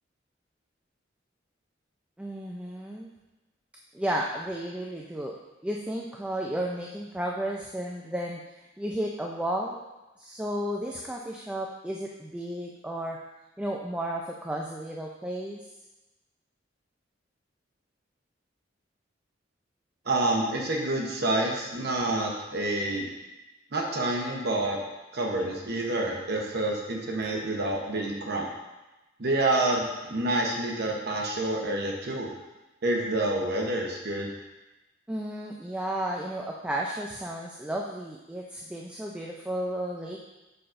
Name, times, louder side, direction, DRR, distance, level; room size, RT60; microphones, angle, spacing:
voice 1, 2.2-3.1 3.9-5.4 5.6-8.4 8.8-9.8 10.2-13.2 13.6-15.6 35.1-40.2, right 1 dB, 5° right, -2 dB, 0.4 m, -33 dB
voice 2, 20.1-23.1 23.7-24.8 25.1-28.5 29.2-32.3 32.8-34.3, right 2 dB, 60° right, 0 dB, 0.9 m, -28 dB
6.7 x 5.5 x 2.5 m, 1.0 s
head